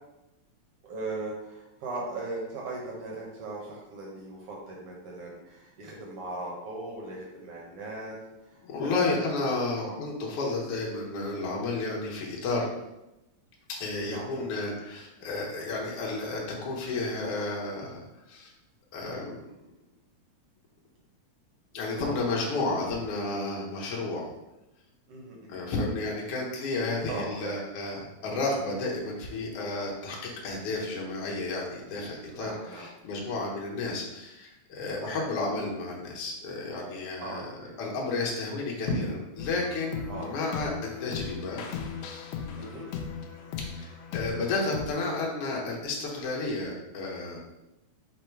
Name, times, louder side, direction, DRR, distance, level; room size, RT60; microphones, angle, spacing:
voice 1, 0.8-9.2 9.8-10.0 14.0-14.4 21.9-22.1 25.1-25.6 27.1-27.6 32.3-32.8 35.0-35.2 37.2-38.0 40.1-40.7 42.6-42.9, right 2 dB, 70° right, -3 dB, 1.4 m, -39 dB
voice 2, 8.6-12.7 13.8-18.5 18.9-19.4 21.7-24.3 25.5-37.4 37.8-40.7 41.0-41.6 43.7-47.4, left 3 dB, 65° left, -3 dB, 1.4 m, -32 dB
sound 1, 39.4-44.9, left 7 dB, 85° left, 1.4 m, -37 dB
5.3 x 2.0 x 4.4 m, 0.95 s
omnidirectional pair, 3.3 m